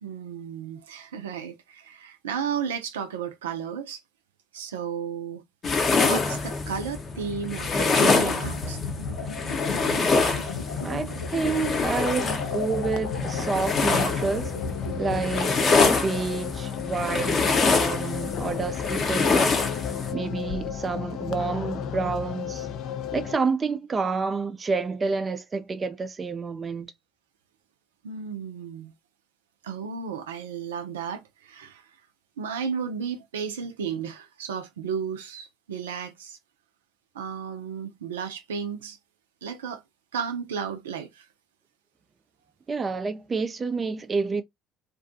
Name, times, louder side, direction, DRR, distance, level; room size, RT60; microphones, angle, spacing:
voice 1, 0.0-4.0 4.5-5.4 6.0-8.8 28.0-28.9 29.6-31.9 32.4-36.4 37.1-39.0 39.4-39.8 40.1-41.3, right 7 dB, 85° right, 0.4 m, -33 dB
sound 1, 5.6-20.1, left 4 dB, 40° left, 0.7 m, -25 dB
sound 2, 8.4-15.2, left 4 dB, 80° left, 0.7 m, -34 dB
voice 2, 10.8-14.5 15.0-19.6 20.1-22.7 23.1-26.9 42.7-44.4, right 4 dB, 30° right, 0.4 m, -29 dB
sound 3, 11.9-23.4, left 8 dB, 60° left, 0.4 m, -34 dB
2.5 x 2.2 x 2.5 m
hypercardioid pair, 65°, 0 cm